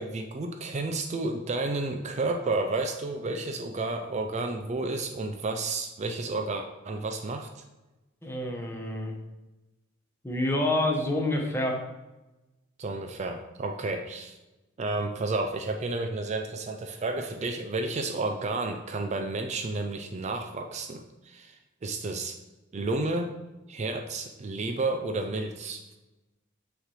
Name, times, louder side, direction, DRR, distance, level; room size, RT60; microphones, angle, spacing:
voice 1, 0.0-7.6 12.8-14.4 14.8-22.4 22.7-23.3 23.7-25.8, right 2 dB, 35° right, 5 dB, 0.4 m, -31 dB
voice 2, 8.2-9.1 10.2-11.8, left 1 dB, 10° left, 0 dB, 0.9 m, -27 dB
6.4 x 3.2 x 4.8 m, 1.0 s
head